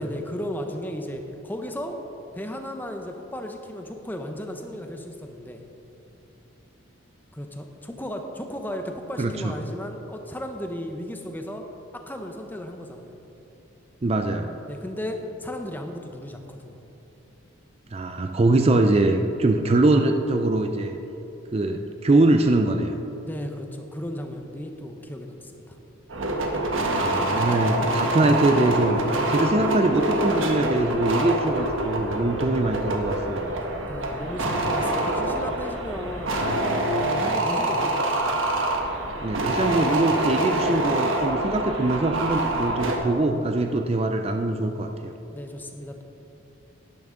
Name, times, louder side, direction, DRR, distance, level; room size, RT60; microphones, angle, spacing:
voice 1, 0.0-2.0 2.3-5.7 7.3-11.6 11.9-13.2 14.7-16.8 23.2-25.8 33.9-36.4 37.0-38.3 45.3-46.0, left 1 dB, 10° left, 4 dB, 0.7 m, -35 dB
voice 2, 9.2-9.5 14.0-14.5 17.9-21.0 21.5-23.0 27.0-29.0 29.3-33.5 39.2-45.1, right 2 dB, 30° right, 5 dB, 0.4 m, -23 dB
sound 1, 26.1-43.0, right 1 dB, 70° right, 1.3 m, -25 dB
11.5 x 10.5 x 3.8 m, 3.0 s
head